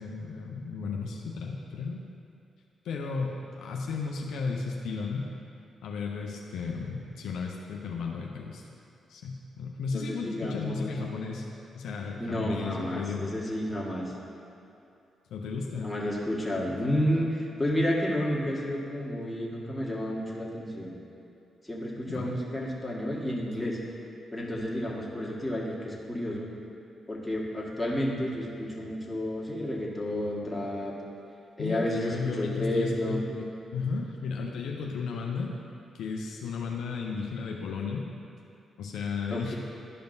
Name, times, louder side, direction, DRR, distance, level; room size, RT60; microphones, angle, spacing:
voice 1, 0.0-2.0 2.8-5.3 5.8-8.6 9.1-11.5 11.7-13.3 15.3-15.9 22.1-22.4 31.6-35.5 35.9-38.1 38.8-39.5, left 4 dB, 75° left, 0 dB, 0.5 m, -34 dB
voice 2, 9.9-10.9 12.2-14.1 15.8-21.0 21.6-23.8 24.3-26.5 27.1-30.9 31.6-33.2 39.3-39.6, equal, 10° left, -5 dB, 1.6 m, -31 dB
11.5 x 5.1 x 2.7 m, 2.7 s
hypercardioid pair, 45°, 0 cm